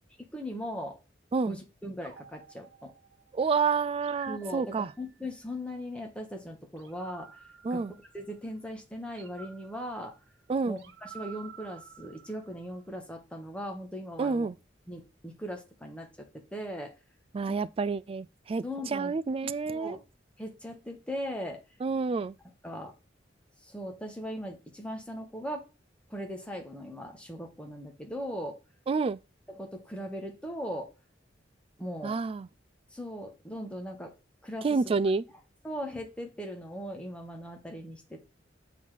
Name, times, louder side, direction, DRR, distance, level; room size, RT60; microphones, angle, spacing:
voice 1, 0.2-1.0 1.4-2.9 4.3-7.4 7.7-7.8 8.1-10.1 10.7-14.5 14.9-16.9 17.5-17.6 18.6-19.1 19.4-20.0 20.4-21.6 22.6-22.9 23.6-25.6 26.1-28.6 29.5-30.9 31.8-32.1 32.9-34.1 34.4-34.9 35.6-38.2, equal, 5° left, 1.4 m, -39 dB
sound 1, 2.0-3.4 4.0-5.3 6.8-8.5 9.2-12.7, right 7 dB, 75° right, 1.3 m, -52 dB
voice 2, 3.3-4.9 7.6-7.9 10.5-10.8 14.2-14.6 17.3-18.6 18.9-20.0 21.8-22.4 28.9-29.2 32.0-32.5 34.6-35.2, right 4 dB, 30° right, 0.3 m, -28 dB
7.1 x 4.0 x 5.0 m
head